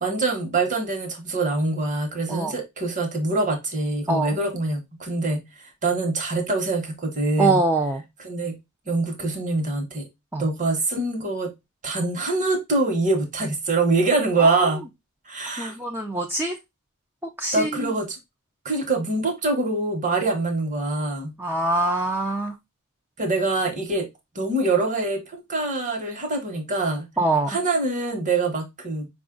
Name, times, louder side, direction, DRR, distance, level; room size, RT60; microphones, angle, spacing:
voice 1, 0.0-7.6 8.2-8.5 8.9-10.1 10.4-11.5 11.8-14.8 15.3-15.8 17.5-18.2 18.6-21.3 23.2-24.1 24.3-27.0 27.5-29.1, right 3 dB, 35° right, 1.1 m, -24 dB
voice 2, 7.4-8.0 10.3-10.4 14.4-14.8 15.6-16.6 17.4-17.9 21.4-22.5 27.2-27.5, right 2 dB, 10° right, 0.4 m, -24 dB
5.0 x 2.4 x 3.7 m
head